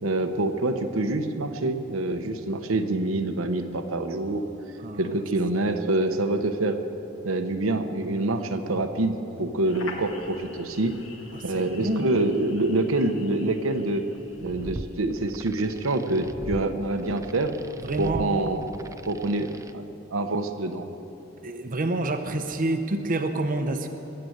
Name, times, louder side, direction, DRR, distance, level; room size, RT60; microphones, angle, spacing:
voice 1, 0.0-4.4 5.0-6.8 7.2-11.0 11.4-14.0 14.4-17.5 18.0-19.8 20.1-20.9, right 2 dB, 85° right, 6 dB, 1.0 m, -26 dB
voice 2, 4.8-5.2 11.3-12.1 17.8-18.3 21.4-23.9, right 2 dB, 45° right, 6 dB, 0.8 m, -28 dB
sound 1, 9.6-15.0, left 3 dB, 70° left, 1.6 m, -45 dB
sound 2, 14.2-19.7, right 1 dB, 15° right, 0.4 m, -40 dB
21.0 x 7.8 x 8.0 m, 3.0 s
head